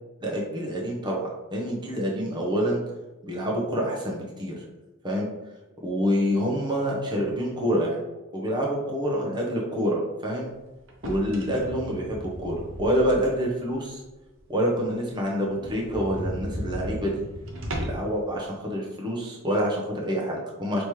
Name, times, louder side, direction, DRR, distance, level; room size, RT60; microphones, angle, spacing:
voice 1, 0.2-2.8 3.2-4.6 5.0-5.3 5.8-8.0 8.3-10.5 11.0-14.0 14.5-17.2 17.8-20.8, equal, 20° right, -3 dB, 0.8 m, -27 dB
sound 1, 10.9-13.4 13.9-14.0 14.4-14.5 14.7-14.8 15.1-15.2 15.5-18.1, equal, 60° right, 0.8 m, -35 dB
5.2 x 3.0 x 3.1 m, 1.1 s
head